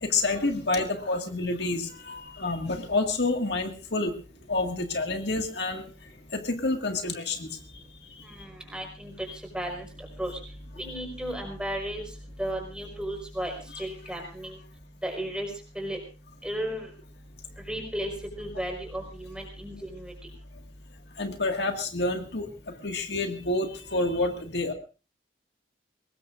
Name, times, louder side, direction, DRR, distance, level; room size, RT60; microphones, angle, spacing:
voice 1, 0.0-4.1 4.5-5.9 6.3-7.6 9.3-9.4 13.7-13.8 21.2-22.5 22.8-24.7, left 2 dB, 65° left, 4 dB, 1.9 m, -28 dB
voice 2, 8.7-9.1 9.5-9.9 10.2-10.3 10.8-12.0 12.4-14.5 15.0-15.5 15.7-16.0 16.4-16.9 17.7-18.1 18.4-20.1, equal, 5° right, 2 dB, 4.8 m, -34 dB
23.5 x 19.0 x 2.6 m, 0.34 s
head